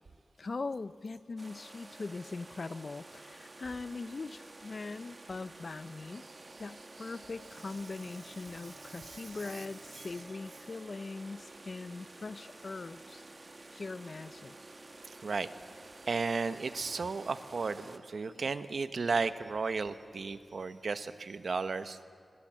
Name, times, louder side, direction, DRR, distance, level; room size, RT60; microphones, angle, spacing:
voice 1, 0.4-6.2 6.6-13.2 13.7-14.6, left 3 dB, 60° left, 15 dB, 0.7 m, -41 dB
sound 1, 1.4-18.0, right 2 dB, 40° right, 1.5 m, -51 dB
voice 2, 7.0-7.3 9.0-9.7 9.9-10.2 15.2-15.5 16.1-22.0, right 4 dB, 80° right, 12 dB, 1.0 m, -34 dB
Water tap faucet / Sink (filling or washing), 7.3-11.3 11.9-12.0, right 3 dB, 55° right, 2.4 m, -57 dB
28.0 x 24.0 x 7.6 m, 2.2 s
wide cardioid pair, 90°, 0 cm